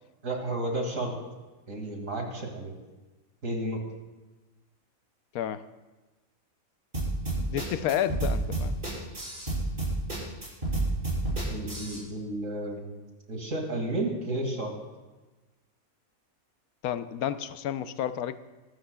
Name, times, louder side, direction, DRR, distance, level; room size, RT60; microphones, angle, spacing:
voice 1, 0.2-1.1 1.7-2.8 3.4-3.8 11.5-12.9 13.3-14.7, right 1 dB, 65° right, 2 dB, 2.6 m, -32 dB
sound 1, 6.9-12.0, right 2 dB, 35° right, 5.2 m, -30 dB
voice 2, 7.4-8.8 16.8-18.3, left 10 dB, 90° left, 12 dB, 1.1 m, -31 dB
23.5 x 13.0 x 2.3 m, 1.2 s
omnidirectional pair, 1.5 m